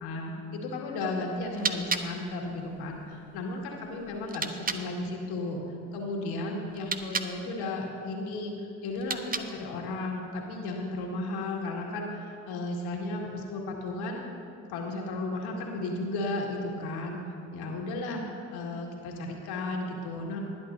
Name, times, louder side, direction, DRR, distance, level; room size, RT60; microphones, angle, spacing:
voice 1, 0.0-5.6 5.9-8.5 8.8-14.2 14.7-17.2 17.5-18.2 18.5-20.4, left 2 dB, 65° left, 0 dB, 2.0 m, -34 dB
sound 1, 1.3-4.9 6.7-7.4 8.9-9.7, right 4 dB, 20° right, 0.8 m, -35 dB
19.5 x 10.5 x 2.7 m, 2.6 s
hypercardioid pair, 50°, 41 cm